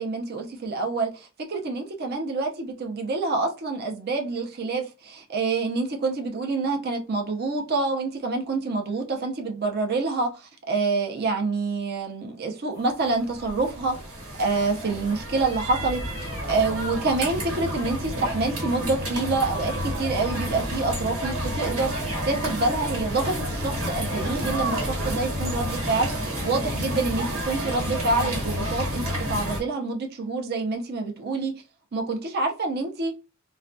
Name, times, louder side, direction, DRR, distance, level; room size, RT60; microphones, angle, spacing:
voice 1, 0.0-14.0 14.4-31.5 31.9-33.1, right 3 dB, 50° right, 0.5 m, -27 dB
sound 1, 13.0-29.6, equal, 90° right, 1.2 m, -30 dB
2.3 x 2.1 x 2.5 m
head